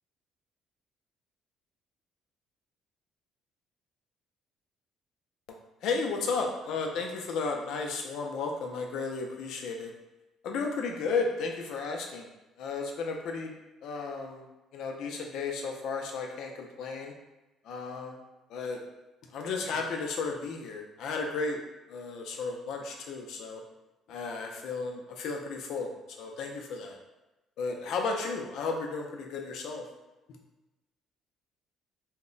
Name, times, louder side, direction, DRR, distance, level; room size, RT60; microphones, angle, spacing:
voice 1, 5.8-9.9 10.4-12.3 12.6-13.5 13.8-14.5 14.7-17.1 17.6-18.2 18.5-18.8 19.3-21.6 21.9-23.6 24.1-25.9 26.2-27.0 27.6-29.8, left 4 dB, 60° left, 2 dB, 0.4 m, -33 dB
2.1 x 2.0 x 3.7 m, 1.0 s
cardioid pair, 170°, 0 cm